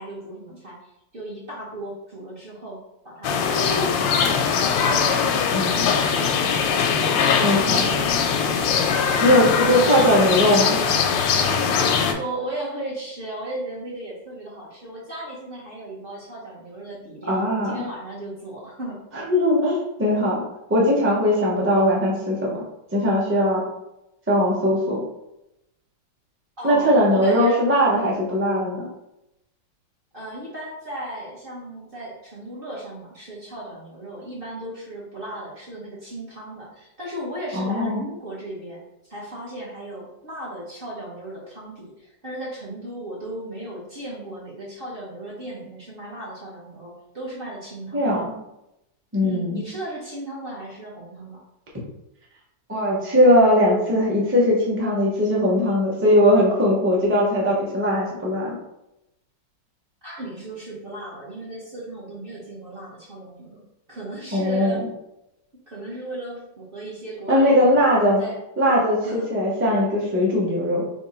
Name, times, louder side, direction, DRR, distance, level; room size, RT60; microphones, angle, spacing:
voice 1, 0.0-2.8 3.0-5.7 9.3-10.4 10.8-11.0 12.2-19.0 26.6-27.6 27.9-28.2 30.1-48.2 49.2-51.4 60.0-64.8 65.7-68.4 69.0-69.3, right 1 dB, 40° right, -5 dB, 0.8 m, -36 dB
sound 1, 3.2-12.1, left 6 dB, 85° left, 1.3 m, -21 dB
voice 2, 5.5-5.9 7.4-8.0 9.2-10.8 17.3-17.8 19.1-20.4 20.7-22.6 22.9-23.6 24.3-25.0 26.6-28.9 37.5-38.0 47.9-48.4 49.1-49.6 52.7-58.6 64.3-64.9 67.3-68.2 68.6-70.8, equal, 15° right, -5 dB, 0.4 m, -20 dB
3.6 x 2.8 x 4.2 m, 0.87 s
omnidirectional pair, 2.0 m